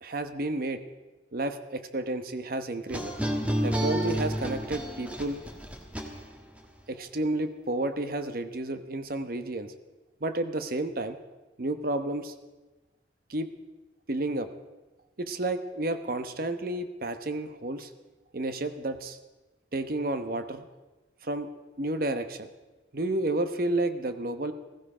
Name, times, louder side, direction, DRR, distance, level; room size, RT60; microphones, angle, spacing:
voice 1, 0.0-0.8 1.3-3.1 3.6-5.4 6.9-9.7 10.2-11.2 11.6-12.3 13.3-13.5 14.1-14.5 15.2-17.9 18.3-19.2 19.7-20.7 21.2-21.5 21.8-22.5 22.9-24.5, right 2 dB, 55° right, 9 dB, 1.0 m, -31 dB
sound 1, 2.9-6.6, equal, 10° right, 1.4 m, -30 dB
15.0 x 15.0 x 4.9 m, 1.2 s
head